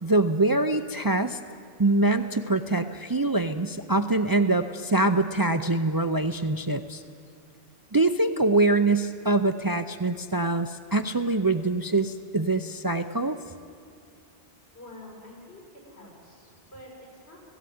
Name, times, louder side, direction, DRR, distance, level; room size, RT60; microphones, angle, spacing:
voice 1, 0.0-1.4 1.8-7.0 7.9-13.4, right 2 dB, 30° right, 8 dB, 0.4 m, -24 dB
voice 2, 14.7-17.4, left 1 dB, 85° left, -3 dB, 6.3 m, -47 dB
17.0 x 17.0 x 9.4 m, 2.5 s
omnidirectional pair, 1.1 m